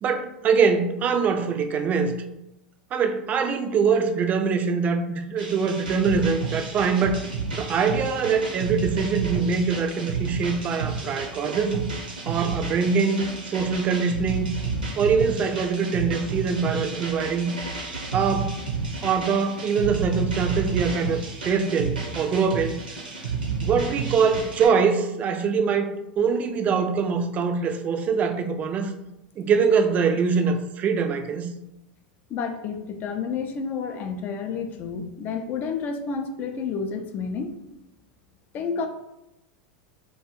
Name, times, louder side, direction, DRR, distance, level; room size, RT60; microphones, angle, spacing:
voice 1, 0.0-2.1 2.9-7.2 7.5-11.8 12.3-14.5 15.0-17.5 18.1-18.5 19.0-21.2 21.4-22.8 23.6-28.9 29.4-31.5, right 5 dB, 30° right, 6 dB, 0.3 m, -23 dB
sound 1, 5.4-24.7, right 4 dB, 85° right, 0.7 m, -31 dB
voice 2, 32.3-37.6 38.5-38.9, left 5 dB, 40° left, 6 dB, 0.4 m, -30 dB
2.3 x 2.2 x 3.0 m, 0.89 s
hypercardioid pair, 90°, 5 cm